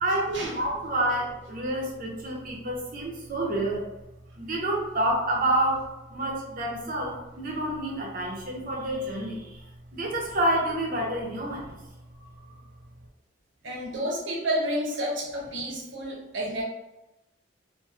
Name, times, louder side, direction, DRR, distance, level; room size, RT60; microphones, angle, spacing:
voice 1, 0.0-3.9 4.4-9.6 9.9-11.7, right 1 dB, 45° right, -1 dB, 0.7 m, -28 dB
voice 2, 13.6-16.6, equal, 85° right, -2 dB, 0.8 m, -30 dB
2.9 x 2.5 x 2.3 m, 0.96 s
head